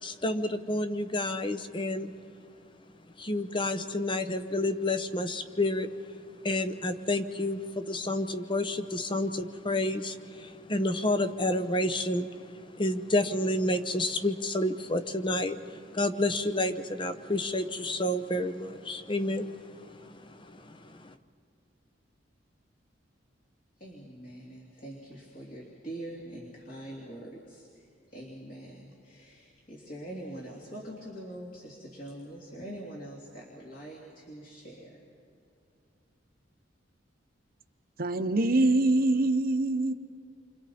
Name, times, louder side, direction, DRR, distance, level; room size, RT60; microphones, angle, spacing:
voice 1, 0.0-2.1 3.2-5.9 6.4-21.1, left 1 dB, 25° left, 0.8 m, -30 dB
voice 2, 23.8-35.0, right 1 dB, 45° left, 2.8 m, -44 dB
voice 3, 38.0-39.9, right 2 dB, 50° right, 0.9 m, -24 dB
29.5 x 25.0 x 4.3 m
head